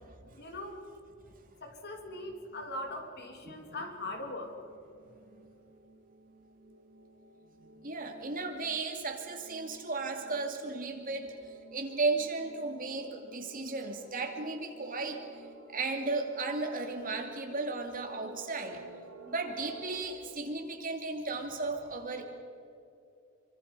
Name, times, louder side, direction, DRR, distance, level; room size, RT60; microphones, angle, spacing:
voice 1, 0.4-0.8 1.6-4.5, left 1 dB, 50° left, 4 dB, 2.8 m, -40 dB
sound 1, 1.9-20.2, right 1 dB, 80° right, 5.4 m, -55 dB
voice 2, 3.4-3.9 7.6-15.3 15.7-18.8 19.3-22.3, right 3 dB, 40° right, 3 dB, 2.6 m, -35 dB
28.0 x 24.5 x 5.7 m, 2.6 s
head